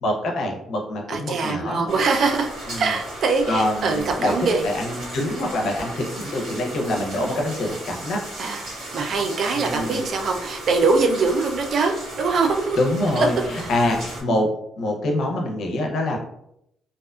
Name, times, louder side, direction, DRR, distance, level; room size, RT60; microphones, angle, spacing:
voice 1, 0.0-1.9 2.7-2.9 3.5-4.3 4.6-8.2 9.5-10.0 12.8-14.5 14.8-16.2, left 1 dB, 70° left, 1 dB, 0.6 m, -25 dB
voice 2, 1.1-2.5 2.8-4.6 8.4-12.8 13.1-13.7, right 4 dB, 60° right, 4 dB, 0.4 m, -23 dB
sound 1, 1.9-14.2, right 1 dB, 85° right, 1.2 m, -36 dB
2.6 x 2.3 x 2.2 m, 0.76 s
cardioid pair, 90°, 0 cm